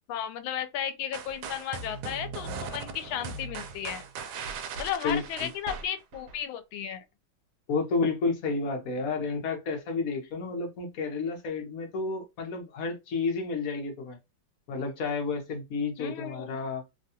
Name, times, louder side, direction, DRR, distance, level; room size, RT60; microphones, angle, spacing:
voice 1, 0.1-4.0 4.8-7.0 16.0-16.6, left 9 dB, 85° left, 1.4 m, -34 dB
sound 1, 1.1-6.4, right 5 dB, 85° right, 1.4 m, -39 dB
voice 2, 5.0-5.5 7.7-14.2 14.7-16.8, left 4 dB, 60° left, 1.0 m, -31 dB
3.4 x 2.2 x 2.7 m
omnidirectional pair, 2.2 m